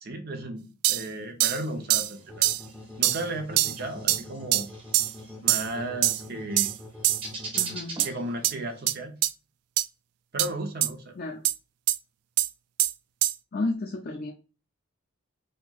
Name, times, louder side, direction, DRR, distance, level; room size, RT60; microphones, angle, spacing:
voice 1, 0.0-2.5 3.0-4.7 5.4-6.7 8.0-9.2 10.3-11.2, right 1 dB, 45° right, 5 dB, 0.6 m, -34 dB
HH Closed, 0.8-1.0 1.4-1.6 1.9-2.1 2.4-2.6 3.0-3.2 3.6-3.8 4.1-4.2 4.5-4.6 4.9-5.1 5.5-5.7 6.0-6.2 6.6-6.8 7.0-7.2 7.6-7.7 8.0-8.1 8.4-8.5 8.9-9.0 9.2-9.3 9.8-9.9 10.4-10.5 10.8-10.9 11.4-11.5 11.9-12.0 12.4-12.5 12.8-12.9 13.2-13.3, right 15 dB, 85° right, 0.3 m, -23 dB
sound 1, 1.4-8.8, right 2 dB, 25° right, 1.2 m, -45 dB
sound 2, 2.3-7.8, left 2 dB, ahead, 0.8 m, -43 dB
voice 2, 7.5-8.0 11.2-11.4 13.5-14.3, left 2 dB, 45° left, 3 dB, 0.4 m, -32 dB
4.2 x 2.8 x 2.3 m, 0.35 s
head